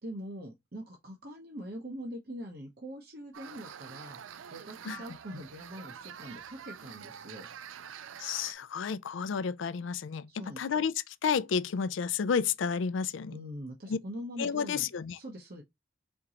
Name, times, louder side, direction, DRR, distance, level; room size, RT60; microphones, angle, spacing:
voice 1, 0.0-4.2 4.5-7.5 10.3-10.6 13.3-14.9 15.1-15.6, equal, 50° right, 0.9 m, -43 dB
sound 1, 3.3-8.5, right 8 dB, 85° right, 0.4 m, -46 dB
voice 2, 8.2-13.3 13.9-14.0 14.4-15.2, left 6 dB, 75° left, 0.4 m, -31 dB
4.5 x 3.7 x 2.9 m
head